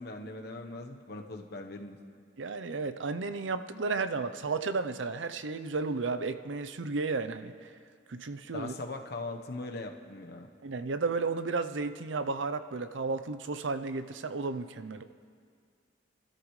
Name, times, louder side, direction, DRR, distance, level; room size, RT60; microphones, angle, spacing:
voice 1, 0.0-2.0 8.5-10.5, left 2 dB, 60° left, 4 dB, 1.1 m, -40 dB
voice 2, 2.4-7.5 8.1-8.7 10.6-15.0, right 4 dB, 85° right, 11 dB, 0.6 m, -33 dB
29.0 x 13.0 x 3.2 m, 2.1 s
head